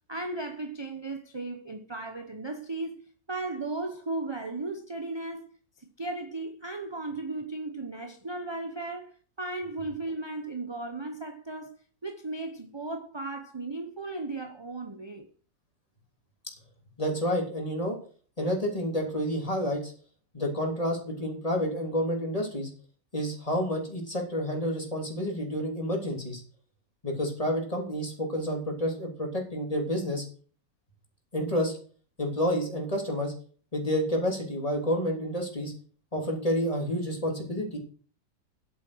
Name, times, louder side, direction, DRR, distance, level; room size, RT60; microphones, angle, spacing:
voice 1, 0.1-5.5 5.8-15.3, right 2 dB, 25° right, 0.7 m, -36 dB
voice 2, 17.0-18.0 18.4-19.9 20.3-22.7 23.1-26.4 27.0-30.2 31.3-31.8 32.2-33.3 33.7-35.7 36.1-37.8, equal, 20° left, 3.5 m, -29 dB
11.0 x 8.6 x 6.3 m
omnidirectional pair, 1.9 m